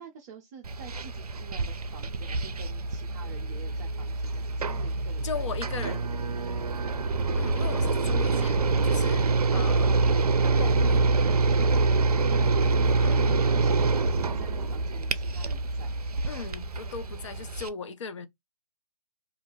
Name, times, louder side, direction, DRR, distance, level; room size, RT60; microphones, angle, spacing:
voice 1, 0.0-5.4 7.3-7.5 7.9-8.5 12.1-12.8 13.3-15.9, right 7 dB, 30° right, 0.5 m, -47 dB
sound 1, 0.6-17.7, right 3 dB, 85° right, 0.4 m, -26 dB
voice 2, 5.2-6.0 7.3-10.0 10.6-11.1 13.0-13.4 16.3-18.3, left 6 dB, 55° left, 0.5 m, -38 dB
2.4 x 2.1 x 3.0 m
figure-of-eight pair, 130°, 19 cm